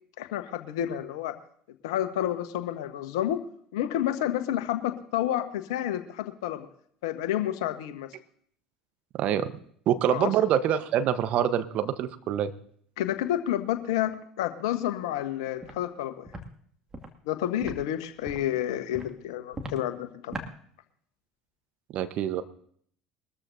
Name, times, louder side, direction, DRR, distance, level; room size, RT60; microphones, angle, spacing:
voice 1, 0.2-1.4 1.8-3.4 3.7-6.7 7.0-8.1 10.1-10.3 13.0-16.3 17.2-20.4, left 12 dB, 70° left, 9 dB, 1.3 m, -30 dB
voice 2, 9.2-9.6 9.9-12.5 21.9-22.4, right 10 dB, 55° right, 10 dB, 1.1 m, -25 dB
Walk footsteps, 15.6-15.8 16.3-16.4 16.9-17.1 17.6-17.8 18.2-18.5 18.9-19.1 19.5-19.8 20.3-20.5, right 1 dB, 25° right, 2.3 m, -37 dB
22.0 x 13.5 x 2.7 m, 0.63 s
hypercardioid pair, 65°, 3 cm